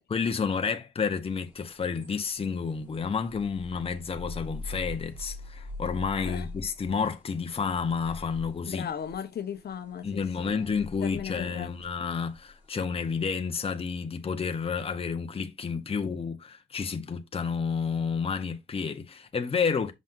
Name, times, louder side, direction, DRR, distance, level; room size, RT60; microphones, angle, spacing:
voice 1, 0.1-8.9 10.0-19.9, left 5 dB, 30° left, 1.0 m, -30 dB
sound 1, 1.3-12.7, left 3 dB, 10° right, 2.9 m, -44 dB
voice 2, 8.7-10.7 11.0-11.7, left 8 dB, 55° left, 1.1 m, -36 dB
6.3 x 5.6 x 2.6 m
cardioid pair, 90°, 20 cm